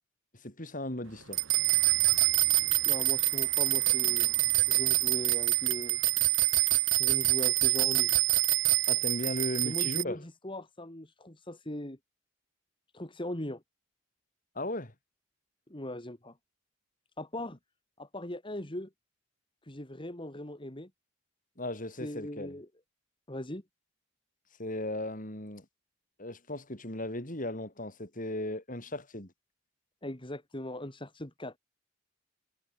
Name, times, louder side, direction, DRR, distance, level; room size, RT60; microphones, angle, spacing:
voice 1, 0.4-1.4 8.9-10.2 14.6-14.9 21.6-22.6 24.6-25.7 26.2-29.3, left 1 dB, 40° left, 5.8 m, -36 dB
sound 1, 1.3-10.0, right 18 dB, 75° right, 1.3 m, -26 dB
voice 2, 2.8-4.3 4.7-6.0 7.0-8.2 9.6-12.0 12.9-13.6 15.7-16.4 17.2-17.6 18.0-18.9 19.6-20.9 22.0-22.7 23.3-23.6 30.0-31.6, left 1 dB, 25° left, 2.6 m, -39 dB
head